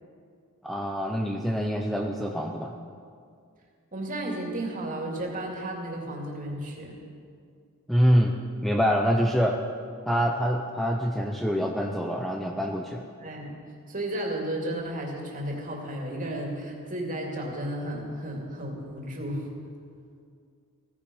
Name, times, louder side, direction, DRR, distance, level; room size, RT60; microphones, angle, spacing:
voice 1, 0.6-2.8 7.9-8.4 8.6-9.6 10.1-13.1, equal, ahead, 2 dB, 0.7 m, -25 dB
voice 2, 3.9-7.0 13.2-13.6 13.9-19.5, right 1 dB, 40° right, 0 dB, 2.8 m, -33 dB
16.5 x 15.0 x 5.5 m, 2.3 s
head